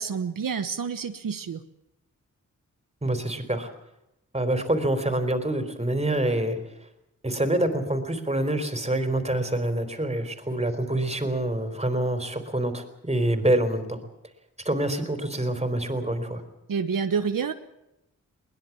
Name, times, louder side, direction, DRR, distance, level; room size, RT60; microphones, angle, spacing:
voice 1, 0.0-1.6 16.7-17.5, right 6 dB, 75° right, 8 dB, 1.3 m, -28 dB
voice 2, 3.0-3.7 4.3-6.6 7.2-14.0 14.6-16.4, right 1 dB, 20° right, 8 dB, 3.9 m, -26 dB
22.0 x 20.5 x 7.3 m, 0.87 s
wide cardioid pair, 100°, 33 cm